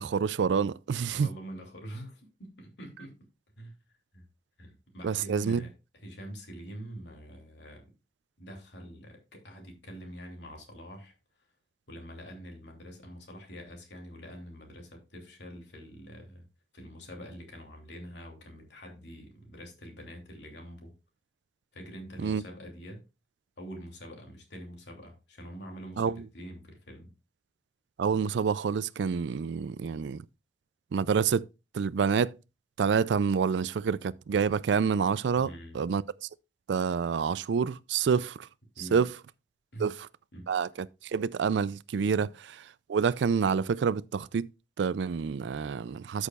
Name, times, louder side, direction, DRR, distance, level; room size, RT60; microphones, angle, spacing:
voice 1, 0.0-1.3 5.0-5.6 22.2-22.4 26.0-26.2 28.0-30.2 30.9-31.5 31.7-32.3 32.8-35.5 35.7-36.0 36.7-38.5 38.9-39.1 39.8-40.1 40.5-42.6 42.9-44.5 44.8-46.3, right 6 dB, 85° right, 0.4 m, -27 dB
voice 2, 1.1-3.1 3.6-3.7 4.1-4.2 4.6-5.7 6.0-7.8 8.4-11.1 11.9-16.4 16.7-20.9 21.7-23.0 23.6-27.1 35.3-35.8 38.8-39.0 39.7-39.9 40.3-40.5, equal, 80° left, 3.0 m, -45 dB
13.5 x 6.4 x 2.4 m
head